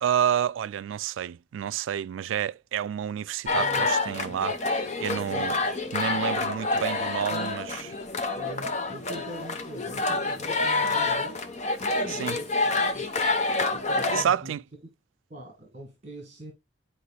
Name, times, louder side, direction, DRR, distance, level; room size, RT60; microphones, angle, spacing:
voice 1, 0.0-4.6 5.0-5.6 5.9-7.7 12.1-12.4 14.1-14.6, right 9 dB, 90° right, 0.3 m, -29 dB
sound 1, 3.5-14.2, left 3 dB, 35° left, 0.8 m, -27 dB
voice 2, 3.5-3.9 5.1-5.9 7.3-7.5 8.4-11.4 11.8-13.0 13.7-14.5 15.3-16.5, right 1 dB, 35° right, 2.0 m, -43 dB
10.0 x 4.8 x 2.2 m
head